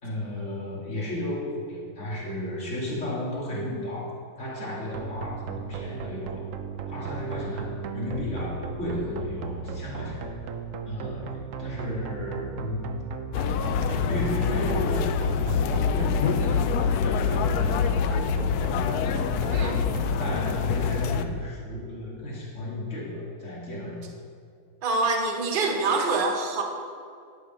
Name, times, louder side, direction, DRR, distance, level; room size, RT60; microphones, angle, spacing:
voice 1, 0.0-6.5 6.9-10.3 10.8-13.0 13.9-17.9 20.2-24.1, left 1 dB, 35° left, -6 dB, 2.6 m, -33 dB
sound 1, 4.9-20.5, right 7 dB, 75° right, 0.7 m, -37 dB
sound 2, 13.3-21.2, left 6 dB, 85° left, 0.8 m, -25 dB
voice 2, 19.5-19.8 24.8-26.6, right 3 dB, 35° right, 2 dB, 0.9 m, -25 dB
11.0 x 6.8 x 5.3 m, 2.4 s
omnidirectional pair, 2.2 m